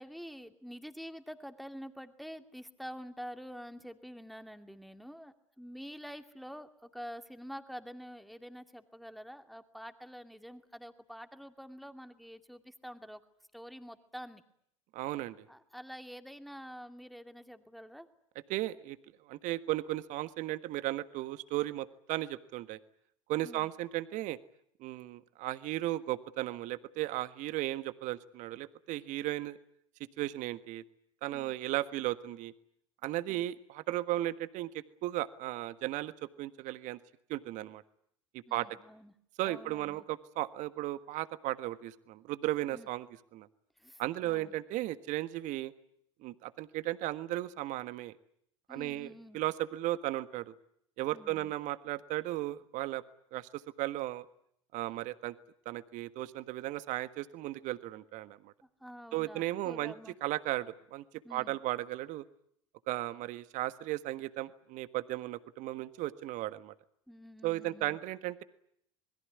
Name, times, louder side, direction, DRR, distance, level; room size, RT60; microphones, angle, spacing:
voice 1, 0.0-13.2 13.5-14.4 15.5-18.1 23.4-23.7 38.5-39.1 39.4-40.0 42.7-42.9 43.8-44.6 48.7-49.4 51.1-51.5 58.8-60.2 61.2-61.6 67.1-68.0, equal, ahead, 8 dB, 2.4 m, -47 dB
voice 2, 14.9-15.4 18.5-19.0 19.3-22.8 23.3-24.4 24.8-29.6 30.2-30.8 31.2-32.5 33.0-34.7 35.0-36.1 36.4-37.0 37.3-37.8 38.5-38.7 39.4-43.1 43.3-43.5 44.0-45.7 46.2-48.1 48.7-50.5 51.0-53.0 53.3-54.2 54.7-55.3 55.6-58.5 59.1-59.9 60.2-61.0 61.3-62.2 62.9-66.7 67.4-68.4, right 16 dB, 55° right, 13 dB, 1.5 m, -35 dB
27.0 x 21.5 x 9.7 m, 0.71 s
figure-of-eight pair, 70°, 16 cm